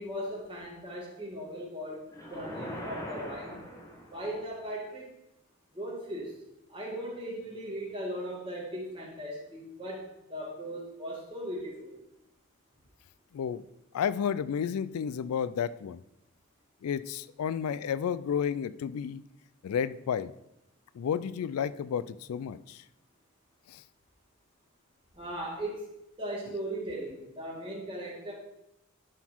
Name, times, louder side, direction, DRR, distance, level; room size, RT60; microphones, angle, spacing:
voice 1, 0.0-3.7 4.1-5.2 5.7-6.4 6.7-11.9 25.1-25.9 26.2-28.3, right 1 dB, 25° right, -4 dB, 2.3 m, -38 dB
sound 1, 2.1-4.4, equal, 15° left, 1.3 m, -41 dB
voice 2, 13.3-13.6 13.9-16.0 16.8-19.2 19.6-20.3 20.9-22.8 23.7-23.8, left 7 dB, 85° left, 16 dB, 0.3 m, -31 dB
11.0 x 4.0 x 4.5 m, 0.86 s
head